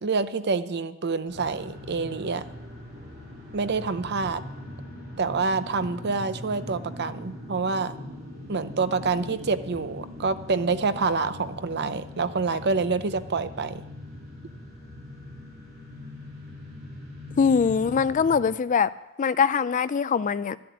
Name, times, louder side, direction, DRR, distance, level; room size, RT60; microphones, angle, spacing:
voice 1, 0.0-2.4 3.5-4.4 5.2-7.9 8.5-13.8, right 4 dB, 55° right, 12 dB, 0.7 m, -27 dB
sound 1, 1.3-18.3, left 1 dB, 35° right, 6.5 m, -41 dB
voice 2, 17.4-18.9 19.2-20.6, left 6 dB, 40° left, 16 dB, 0.4 m, -22 dB
13.0 x 7.8 x 9.3 m, 1.0 s
head